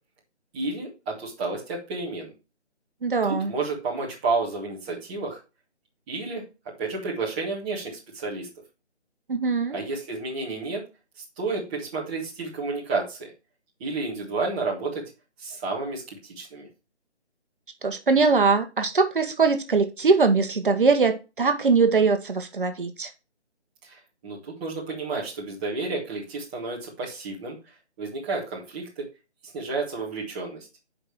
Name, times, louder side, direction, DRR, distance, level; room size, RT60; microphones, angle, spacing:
voice 1, 0.5-2.3 3.2-5.4 6.1-6.4 6.8-8.5 9.7-10.8 11.4-13.3 13.8-15.0 15.4-16.7 23.8-27.6 28.0-28.9 29.5-30.7, right 3 dB, 10° right, 1.0 m, -31 dB
voice 2, 3.0-3.5 9.3-9.8 17.8-23.1, right 4 dB, 50° right, 1.1 m, -21 dB
7.5 x 5.1 x 4.5 m
figure-of-eight pair, 160°, 34 cm